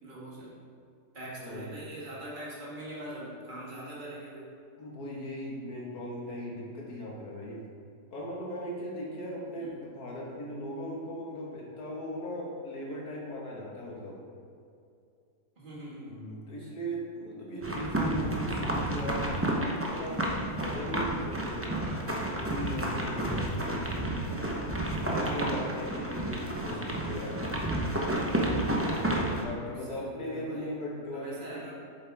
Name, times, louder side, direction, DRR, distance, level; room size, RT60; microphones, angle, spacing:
voice 1, 0.0-0.5 1.1-4.5 9.6-9.9 15.6-16.2 29.9-30.7 31.1-31.7, right 1 dB, 30° right, -6 dB, 2.0 m, -43 dB
voice 2, 1.2-1.7 4.8-7.7 8.1-14.2 16.1-19.2 19.7-22.0 22.3-23.9 25.0-27.4 29.4-31.7, equal, 70° left, -4 dB, 2.2 m, -38 dB
sound 1, 17.6-29.4, right 1 dB, 15° right, 0.5 m, -31 dB
8.9 x 7.1 x 3.5 m, 2.5 s
omnidirectional pair, 1.7 m